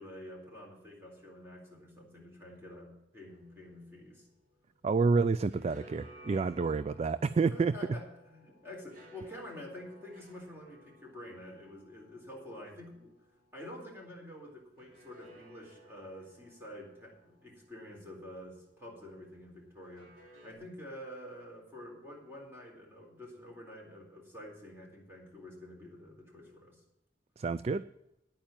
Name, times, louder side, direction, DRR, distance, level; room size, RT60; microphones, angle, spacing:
voice 1, 0.0-4.3 6.7-6.8 7.5-13.1 13.5-26.8, left 1 dB, 15° right, -1 dB, 3.9 m, -48 dB
sound 1, 3.3-4.9 5.2-13.9 14.8-18.8 19.8-20.5, right 1 dB, 55° right, 3.8 m, -59 dB
voice 2, 4.8-7.7 27.4-27.8, right 4 dB, 35° right, 15 dB, 0.3 m, -29 dB
10.0 x 8.8 x 7.4 m, 0.84 s
head